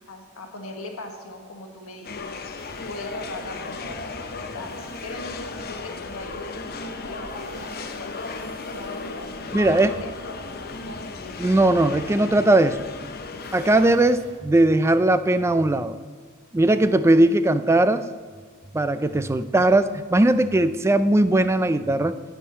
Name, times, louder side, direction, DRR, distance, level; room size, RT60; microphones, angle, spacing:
voice 1, 0.1-2.3 2.8-9.3 9.7-11.3, left 2 dB, 80° left, 3 dB, 1.5 m, -39 dB
sound 1, 2.0-14.0, left 3 dB, 45° left, 0.7 m, -35 dB
sound 2, 2.5-6.5 7.1-12.4 13.3-14.4, right 1 dB, 30° right, 1.6 m, -48 dB
voice 2, 9.5-9.9 11.4-12.9 13.5-16.0 16.5-18.1 18.7-22.2, right 2 dB, 10° right, 12 dB, 0.3 m, -19 dB
9.9 x 9.3 x 4.2 m, 1.6 s
head